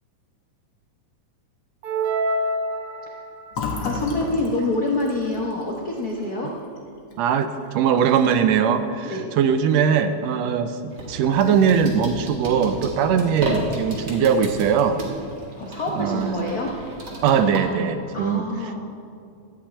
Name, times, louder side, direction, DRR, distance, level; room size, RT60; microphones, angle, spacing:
sound 1, 1.8-3.5, right 1 dB, 60° right, 1.7 m, -26 dB
Fill (with liquid), 3.5-7.2 7.5-7.7 8.0-8.6, left 4 dB, 50° left, 1.9 m, -33 dB
voice 1, 3.8-6.5 9.0-9.3 15.6-16.7 18.1-18.8, left 2 dB, 75° left, -1 dB, 0.8 m, -26 dB
voice 2, 7.2-15.0 15.9-16.4 17.2-18.5, right 7 dB, 75° right, 9 dB, 1.6 m, -21 dB
sound 2, 10.9-17.6, right 2 dB, 40° right, 2.0 m, -33 dB
13.5 x 5.9 x 8.5 m, 2.5 s
omnidirectional pair, 3.4 m